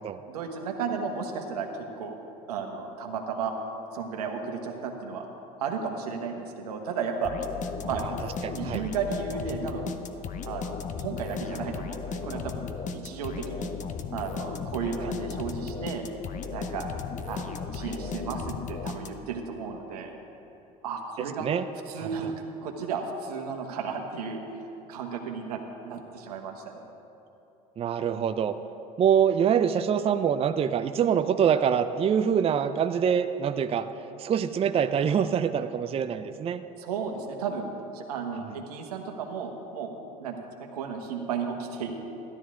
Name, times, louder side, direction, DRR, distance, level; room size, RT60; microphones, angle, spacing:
voice 1, 0.3-2.2 2.5-3.5 3.9-5.2 5.6-7.3 7.8-8.0 8.5-9.9 10.5-12.6 12.9-13.7 14.1-16.0 16.5-16.9 17.3-20.1 20.8-21.5 21.9-22.3 22.6-24.4 24.9-26.8 36.8-37.7 37.9-39.9 40.2-42.0, right 6 dB, 90° right, 3 dB, 1.3 m, -34 dB
sound 1, 7.2-19.4, left 5 dB, 40° left, 0.8 m, -36 dB
voice 2, 7.8-8.1 8.4-8.8 15.0-15.1 21.4-21.6 27.8-28.5 29.0-33.9 34.2-36.6, right 8 dB, 30° right, 9 dB, 0.5 m, -25 dB
13.5 x 12.5 x 3.8 m, 2.9 s
hypercardioid pair, 80°, 19 cm